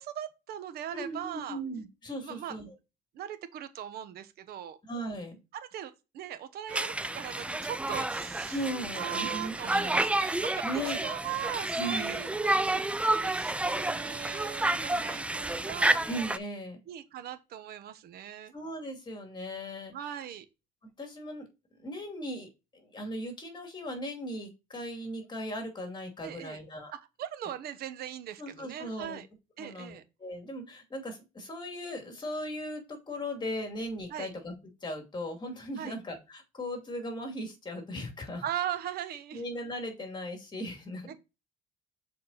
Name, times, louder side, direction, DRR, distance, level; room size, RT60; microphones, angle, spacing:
voice 1, 0.0-1.6 2.2-2.6 3.1-4.8 5.5-8.6 8.9-16.0 16.9-18.5 19.9-20.5 26.2-26.6 26.9-29.3 29.6-30.0 34.1-34.3 35.8-36.0 38.4-39.4 41.1-41.2, right 10 dB, 65° right, 1.0 m, -39 dB
voice 2, 0.9-2.7 4.9-5.4 8.5-10.0 10.6-11.0 11.8-12.2 16.1-16.8 18.5-19.9 21.0-21.5 21.8-26.9 28.4-29.2 29.6-34.5 34.8-38.4 39.3-41.1, equal, 25° left, 2.4 m, -38 dB
Conversation, 6.7-16.4, right 2 dB, 5° right, 0.4 m, -30 dB
6.8 x 4.2 x 4.1 m
cardioid pair, 110°, 17 cm